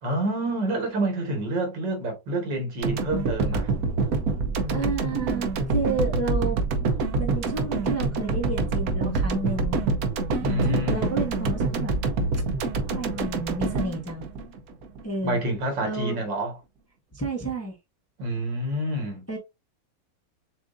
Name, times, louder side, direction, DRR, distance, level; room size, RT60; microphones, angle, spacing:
voice 1, 0.0-3.7 10.4-11.2 15.2-16.5 18.2-19.2, right 1 dB, 80° right, 2.3 m, -28 dB
sound 1, 2.8-15.0, right 3 dB, 65° right, 1.1 m, -26 dB
voice 2, 4.7-6.9 7.2-9.9 10.6-11.9 12.9-14.3 15.0-15.4 15.8-16.2 17.1-17.8 19.3-19.4, right 2 dB, 10° left, 0.7 m, -31 dB
7.1 x 2.5 x 2.5 m
omnidirectional pair, 1.9 m